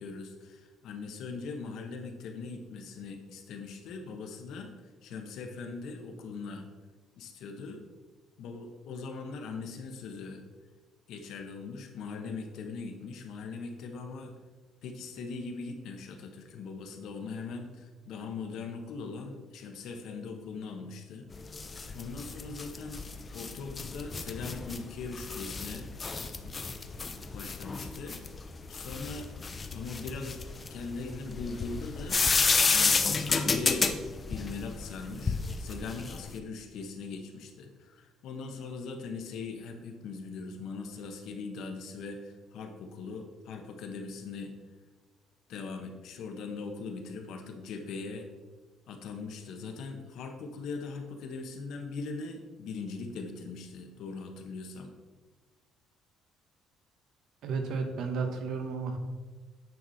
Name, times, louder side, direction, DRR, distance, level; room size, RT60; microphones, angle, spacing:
voice 1, 0.0-4.7 5.0-6.6 7.2-7.8 8.4-10.4 11.1-14.3 14.8-21.3 21.9-23.0 23.3-25.9 26.4-26.6 27.3-28.2 28.7-29.3 29.7-30.4 30.7-32.3 32.7-33.9 34.3-44.5 45.5-48.3 48.9-54.9, left 4 dB, 65° left, 4 dB, 1.1 m, -40 dB
sound 1, 21.3-36.3, left 4 dB, 20° left, 0.5 m, -31 dB
voice 2, 57.4-59.0, right 4 dB, 60° right, 5 dB, 1.1 m, -32 dB
9.3 x 6.0 x 4.1 m, 1.3 s
cardioid pair, 155°, 0 cm